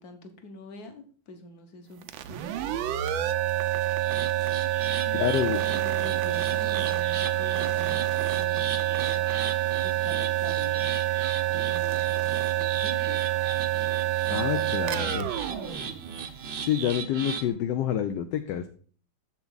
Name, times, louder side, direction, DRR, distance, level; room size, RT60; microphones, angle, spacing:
voice 1, 0.0-2.9 5.0-9.4 9.8-11.0 11.5-13.3 14.3-15.9, left 3 dB, 55° left, 7 dB, 1.6 m, -45 dB
sound 1, 2.0-16.6, right 14 dB, 85° right, 1.4 m, -27 dB
sound 2, 3.9-17.5, right 6 dB, 50° right, 0.8 m, -38 dB
voice 2, 5.1-5.6 14.3-15.3 16.6-18.7, left 10 dB, 70° left, 7 dB, 1.2 m, -27 dB
7.2 x 7.0 x 3.9 m, 0.43 s
omnidirectional pair, 2.1 m